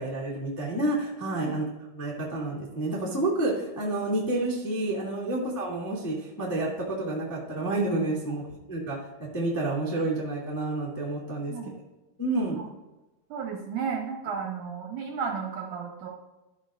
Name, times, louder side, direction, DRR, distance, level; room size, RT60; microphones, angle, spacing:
voice 1, 0.0-1.6 1.9-8.4 8.7-9.0 9.3-11.5 12.2-12.6, right 2 dB, 10° left, -4 dB, 1.3 m, -29 dB
voice 2, 13.3-16.1, right 6 dB, 65° right, 0 dB, 2.2 m, -33 dB
13.0 x 12.0 x 2.5 m, 1.0 s
omnidirectional pair, 4.4 m